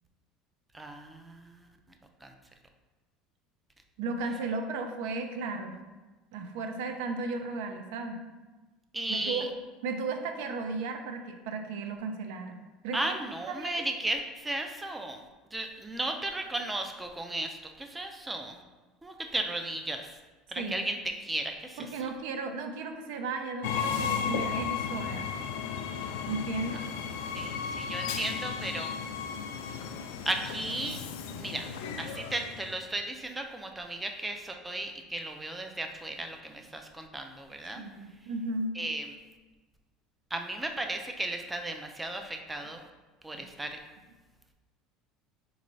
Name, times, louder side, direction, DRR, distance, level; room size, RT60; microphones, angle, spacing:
voice 1, 0.7-1.7 2.2-2.3 8.9-9.5 12.9-15.2 15.5-18.6 19.0-20.2 20.5-21.9 27.3-29.0 30.3-31.0 31.4-31.7 32.0-37.8 38.7-39.1 40.3-42.8 43.2-43.8, right 2 dB, 10° right, 4 dB, 0.3 m, -35 dB
voice 2, 4.0-5.7 6.3-8.2 9.1-9.5 9.8-13.2 13.5-13.8 20.6-20.8 21.8-25.3 26.3-26.8 37.8-38.7 43.3-43.4, right 3 dB, 80° right, 6 dB, 0.5 m, -35 dB
Train, 23.6-32.8, left 7 dB, 85° left, 0.3 m, -34 dB
4.4 x 3.1 x 2.6 m, 1.2 s
cardioid pair, 145°, 0 cm